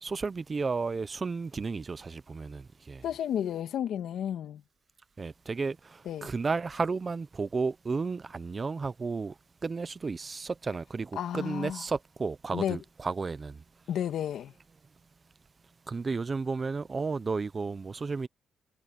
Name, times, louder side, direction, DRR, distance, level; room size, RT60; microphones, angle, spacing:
voice 1, 0.0-3.0 5.2-9.3 9.6-13.6 15.9-18.3, right 4 dB, 30° right, 0.9 m, -33 dB
voice 2, 3.0-4.6 6.1-6.3 11.2-11.8 12.5-12.8 13.9-14.5, left 10 dB, 70° left, 2.1 m, -32 dB
cardioid pair, 90°, 0 cm